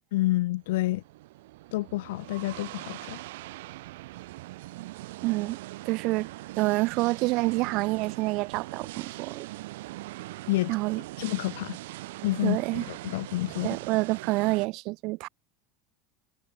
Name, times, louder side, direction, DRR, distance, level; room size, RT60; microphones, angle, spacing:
voice 1, 0.1-1.0 1.7-3.2 10.5-10.7 11.2-11.8 12.2-13.8, left 18 dB, 80° left, 0.3 m, -29 dB
sound 1, 0.6-14.7, right 18 dB, 75° right, 0.6 m, -41 dB
voice 2, 5.2-5.6 5.8-6.3 6.6-9.5 10.7-11.0 12.4-12.8 13.6-15.3, right 23 dB, 45° right, 0.9 m, -27 dB
supercardioid pair, 170°, 0 cm